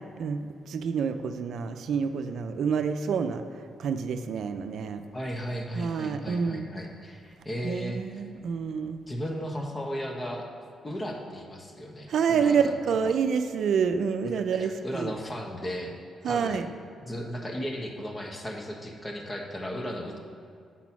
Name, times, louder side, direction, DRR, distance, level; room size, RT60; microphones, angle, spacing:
voice 1, 0.2-3.4 3.8-5.0 5.7-6.6 7.6-9.0 12.1-15.1 16.2-16.7, right 6 dB, 70° right, 8 dB, 0.4 m, -28 dB
voice 2, 5.1-8.2 9.1-10.5 10.8-12.7 13.0-13.2 14.5-15.9 16.2-16.6 17.0-20.2, equal, 25° left, 1 dB, 1.2 m, -35 dB
7.4 x 4.1 x 5.9 m, 2.4 s
cardioid pair, 80°, 0 cm